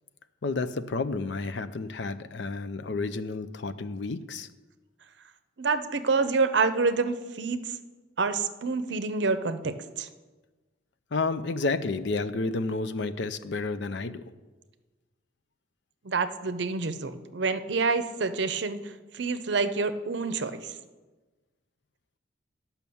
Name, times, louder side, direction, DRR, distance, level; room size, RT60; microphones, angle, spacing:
voice 1, 0.4-4.5 11.1-14.2, left 3 dB, 65° left, 12 dB, 0.5 m, -31 dB
voice 2, 5.6-7.7 8.2-10.1 16.0-20.7, right 4 dB, 65° right, 11 dB, 0.6 m, -27 dB
11.0 x 5.7 x 7.0 m, 1.3 s
head